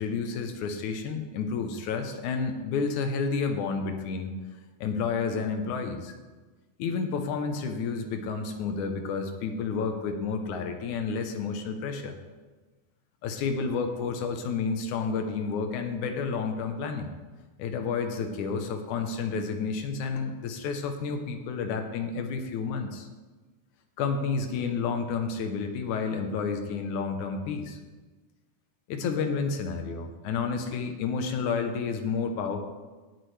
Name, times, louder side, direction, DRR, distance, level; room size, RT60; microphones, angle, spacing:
voice 1, 0.0-4.4 4.8-6.1 6.8-12.2 13.2-17.1 17.6-23.1 24.0-27.8 28.9-32.6, left 5 dB, 70° left, 6 dB, 2.0 m, -30 dB
18.0 x 8.6 x 3.3 m, 1.3 s
omnidirectional pair, 4.2 m